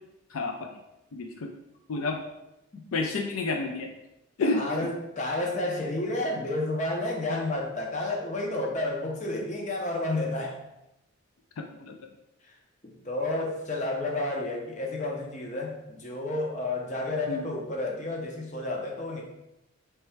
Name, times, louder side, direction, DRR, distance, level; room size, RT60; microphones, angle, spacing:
voice 1, 1.1-1.5 1.9-2.2 2.9-3.9 4.4-4.6 11.8-12.0 17.3-17.5, left 3 dB, 75° left, 3 dB, 0.4 m, -29 dB
voice 2, 4.4-10.6 12.8-19.2, left 2 dB, 35° left, 1 dB, 0.6 m, -31 dB
3.3 x 3.2 x 4.6 m, 0.90 s
head